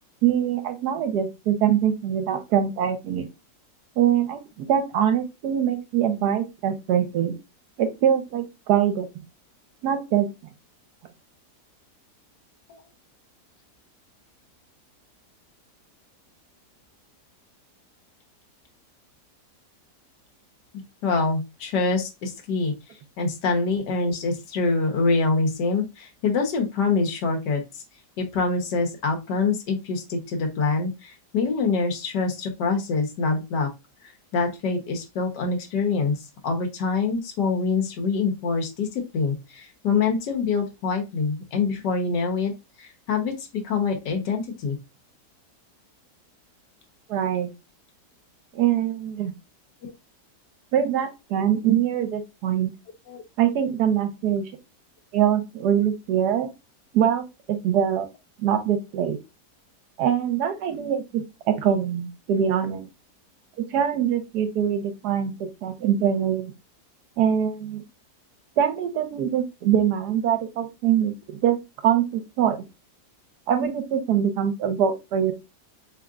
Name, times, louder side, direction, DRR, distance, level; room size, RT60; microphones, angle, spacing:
voice 1, 0.2-3.3 4.0-7.4 7.8-9.1 9.8-10.3 47.1-47.5 48.5-49.3 50.7-52.7 53.4-54.5 55.1-56.5 56.9-58.1 58.4-59.2 60.0-62.9 63.7-66.5 67.2-67.8 68.6-71.6 71.8-72.6 73.5-75.3, right 9 dB, 75° right, 8 dB, 1.2 m, -23 dB
voice 2, 21.0-22.7 23.2-27.8 28.2-33.7 34.3-42.5 42.8-44.8 49.8-49.9 53.1-53.2, left 4 dB, 85° left, 3 dB, 1.5 m, -25 dB
3.7 x 3.3 x 2.3 m, 0.24 s
omnidirectional pair, 1.8 m